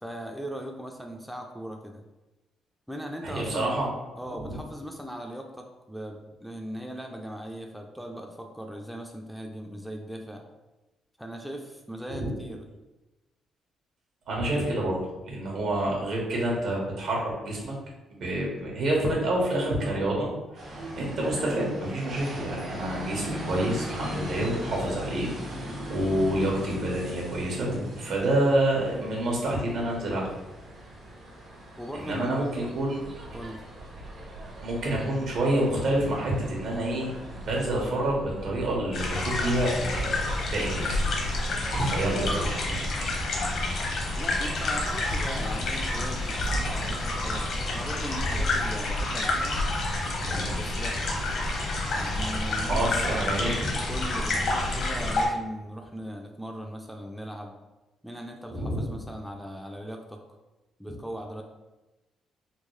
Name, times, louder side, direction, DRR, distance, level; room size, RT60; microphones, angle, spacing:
voice 1, 0.0-2.1 2.9-3.7 4.2-10.4 11.2-12.7 31.8-32.5 33.3-33.7 44.2-49.6 50.2-51.1 51.9-53.3 53.9-57.6 58.0-60.2 60.8-61.4, equal, ahead, 2 dB, 0.4 m, -39 dB
voice 2, 3.2-3.9 4.4-4.6 12.1-12.4 14.3-15.0 15.3-17.7 18.2-25.3 25.9-30.3 32.0-33.0 34.6-40.1 40.5-41.3 41.7-42.8 50.2-50.5 52.7-53.8 58.5-58.9, right 1 dB, 70° right, -2 dB, 1.1 m, -28 dB
sound 1, 20.5-37.7, equal, 90° right, 1.3 m, -40 dB
sound 2, 33.0-48.5, right 1 dB, 50° right, 0.8 m, -44 dB
sound 3, 38.9-55.3, left 2 dB, 65° left, 0.9 m, -28 dB
3.6 x 2.3 x 3.2 m, 1.1 s
cardioid pair, 90°, 0 cm